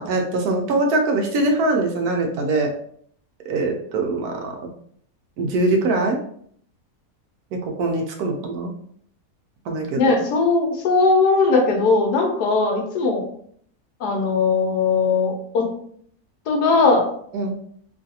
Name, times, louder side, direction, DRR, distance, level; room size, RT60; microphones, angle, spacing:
voice 1, 0.0-2.7 3.5-4.6 5.4-6.2 7.6-8.7 9.7-10.0 17.3-17.5, right 2 dB, 75° right, 2 dB, 1.1 m, -22 dB
voice 2, 9.9-13.2 14.0-15.6 16.5-17.1, left 3 dB, 85° left, 1 dB, 1.3 m, -19 dB
3.1 x 2.4 x 2.7 m, 0.63 s
omnidirectional pair, 1.7 m